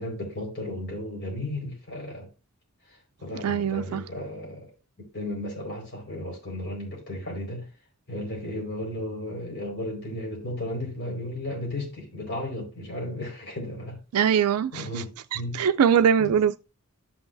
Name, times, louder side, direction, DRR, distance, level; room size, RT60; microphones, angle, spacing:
voice 1, 0.0-2.3 3.2-4.7 5.1-7.7 8.1-14.0 14.7-15.6 16.2-16.3, left 1 dB, 50° left, 4.6 m, -34 dB
voice 2, 3.4-4.0 14.1-15.0 15.3-16.6, right 8 dB, 80° right, 0.4 m, -22 dB
13.5 x 6.1 x 2.6 m
head